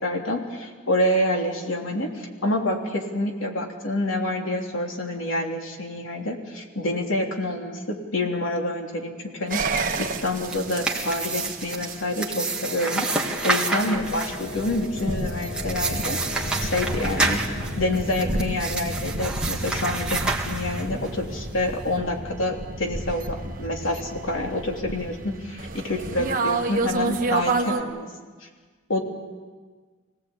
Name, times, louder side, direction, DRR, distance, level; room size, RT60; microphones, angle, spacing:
voice 1, 0.0-17.4 17.8-28.1 28.4-28.5 28.9-29.0, left 1 dB, 85° left, 1 dB, 3.3 m, -27 dB
sound 1, 9.5-27.8, right 3 dB, 45° right, 1.6 m, -31 dB
sound 2, 10.2-21.1, right 3 dB, 5° right, 2.0 m, -29 dB
Wind instrument woodwind instrument, 12.6-18.3, left 4 dB, 60° left, 5.0 m, -40 dB
25.5 x 18.0 x 8.6 m, 1.5 s
head